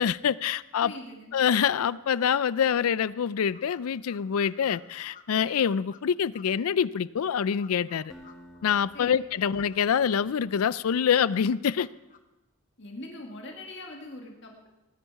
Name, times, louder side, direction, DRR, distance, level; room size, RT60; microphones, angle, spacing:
voice 1, 0.0-0.9 1.3-8.1 8.6-11.9, left 7 dB, 75° left, 0.4 m, -25 dB
voice 2, 0.8-1.3 8.9-9.1 9.4-9.5 12.8-14.7, left 1 dB, 55° left, 1.8 m, -42 dB
sound 1, 3.5-6.0 6.3-6.4 7.2-9.1 9.3-11.0 11.3-12.2, left 7 dB, 35° left, 0.8 m, -54 dB
Acoustic guitar, 8.1-11.1, equal, ahead, 1.8 m, -53 dB
19.0 x 10.0 x 4.7 m
head